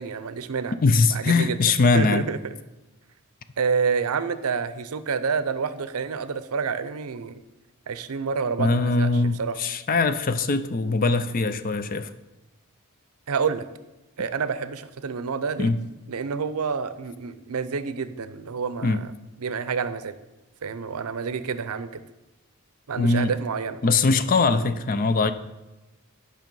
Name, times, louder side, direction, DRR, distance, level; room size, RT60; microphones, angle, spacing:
voice 1, 0.0-0.7 1.1-2.4 3.6-7.4 7.9-9.5 13.3-13.6 14.2-15.7 16.1-19.1 19.4-20.1 20.6-21.9 22.9-23.8, right 5 dB, 85° right, 0.6 m, -28 dB
voice 2, 0.8-2.3 8.6-12.1 15.6-15.8 18.8-19.0 23.0-23.3 23.8-25.3, left 3 dB, 40° left, 0.4 m, -21 dB
8.9 x 5.6 x 5.3 m
head